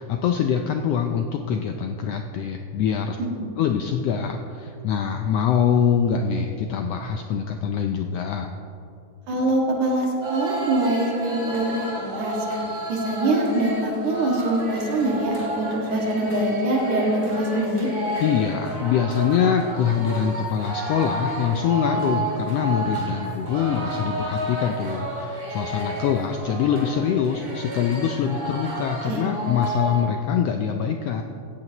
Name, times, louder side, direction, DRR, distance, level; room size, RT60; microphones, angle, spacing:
voice 1, 0.0-3.2 3.6-8.5 18.2-31.2, left 7 dB, 80° left, 5 dB, 1.4 m, -24 dB
voice 2, 9.3-12.3 12.9-17.9 29.0-29.3, right 1 dB, 80° right, -1 dB, 3.4 m, -24 dB
sound 1, 10.2-30.0, right 1 dB, 25° right, 3.4 m, -31 dB
17.0 x 14.0 x 3.0 m, 2.8 s
omnidirectional pair, 3.4 m